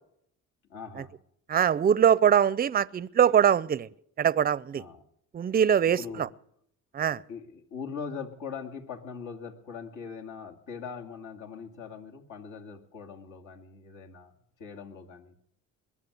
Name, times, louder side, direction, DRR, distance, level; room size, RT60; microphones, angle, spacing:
voice 1, 0.7-1.1 4.7-5.0 5.8-6.3 7.3-14.3 14.6-15.3, left 6 dB, 70° left, 2.3 m, -41 dB
voice 2, 1.5-3.9 4.2-4.8 5.3-6.3 6.9-7.2, right 8 dB, 30° right, 0.5 m, -22 dB
21.5 x 7.4 x 8.3 m
cardioid pair, 90°, 30 cm